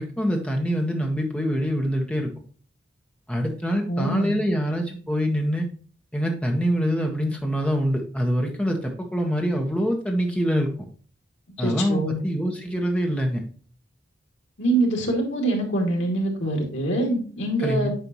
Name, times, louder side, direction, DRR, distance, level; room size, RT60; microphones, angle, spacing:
voice 1, 0.0-2.3 3.3-5.7 6.1-10.7 11.6-13.4 17.6-17.9, equal, 5° left, 2 dB, 1.4 m, -25 dB
voice 2, 3.9-4.4 11.6-12.2 14.6-17.9, right 1 dB, 80° left, 1 dB, 2.5 m, -24 dB
9.4 x 4.8 x 3.1 m, 0.42 s
head